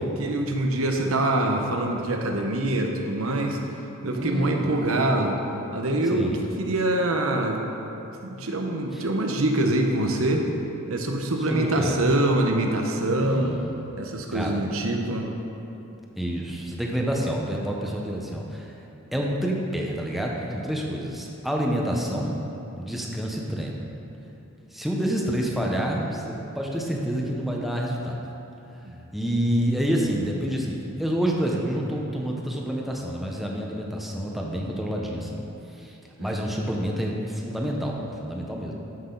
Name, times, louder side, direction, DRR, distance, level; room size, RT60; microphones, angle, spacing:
voice 1, 0.2-3.6 4.0-5.4 5.7-6.3 6.6-7.6 8.4-10.5 10.9-13.6 14.0-15.3 28.8-29.0 36.2-36.5, right 1 dB, 75° right, 2 dB, 1.0 m, -24 dB
voice 2, 4.1-4.8 6.1-6.4 11.5-12.0 13.2-13.7 14.3-14.6 16.2-18.7 19.1-22.3 22.8-23.8 24.7-28.2 29.1-35.4 35.7-38.7, equal, ahead, -2 dB, 1.0 m, -28 dB
13.5 x 6.4 x 4.0 m, 2.9 s
head